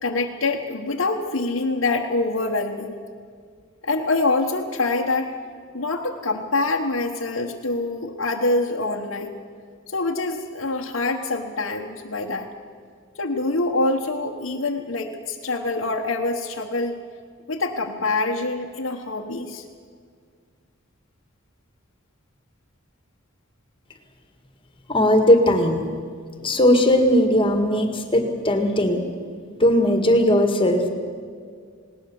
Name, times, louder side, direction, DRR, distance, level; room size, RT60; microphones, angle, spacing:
voice 1, 0.0-3.0 3.8-5.3 5.7-9.4 9.9-12.5 13.1-17.0 17.5-19.6, left 2 dB, 80° left, -1 dB, 1.2 m, -25 dB
voice 2, 24.9-25.8 26.4-29.0 29.6-30.9, left 1 dB, 25° left, 6 dB, 1.9 m, -18 dB
19.5 x 18.0 x 7.2 m, 2.1 s
head